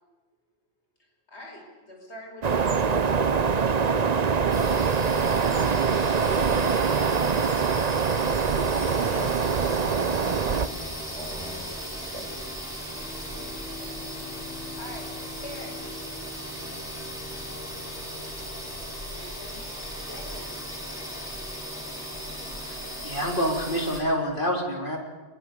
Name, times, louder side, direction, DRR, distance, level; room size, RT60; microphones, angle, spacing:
voice 1, 1.3-3.2 4.7-6.0 9.1-9.3 14.3-15.2 15.4-16.0 18.4-20.6, equal, 85° left, 1 dB, 5.5 m, -44 dB
sound 1, 2.4-10.7, right 5 dB, 40° right, 0.8 m, -24 dB
sound 2, 4.5-24.0, equal, 5° right, 5.8 m, -37 dB
voice 2, 8.7-11.7 12.1-12.4, equal, 25° right, 1 dB, 4.2 m, -42 dB
Bowed string instrument, 12.8-17.4, left 3 dB, 70° right, 3.1 m, -44 dB
voice 3, 22.6-25.0, equal, 50° left, 0 dB, 4.1 m, -27 dB
23.5 x 21.5 x 6.9 m, 1.3 s
omnidirectional pair, 1.1 m